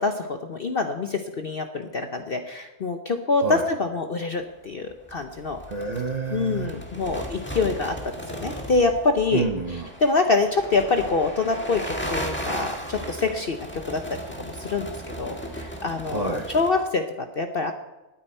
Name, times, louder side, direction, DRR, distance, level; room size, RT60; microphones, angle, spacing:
voice 1, 0.0-5.6 6.3-8.0 8.3-9.4 10.0-14.0 14.4-14.9 15.2-17.7, left 3 dB, 45° left, 6 dB, 0.8 m, -25 dB
sound 1, 4.8-16.8, equal, 5° left, 1.5 m, -36 dB
voice 2, 5.7-6.8 9.3-9.9 16.1-16.5, right 4 dB, 30° right, 4 dB, 0.9 m, -28 dB
20.0 x 9.0 x 4.4 m, 1.0 s
omnidirectional pair, 1.6 m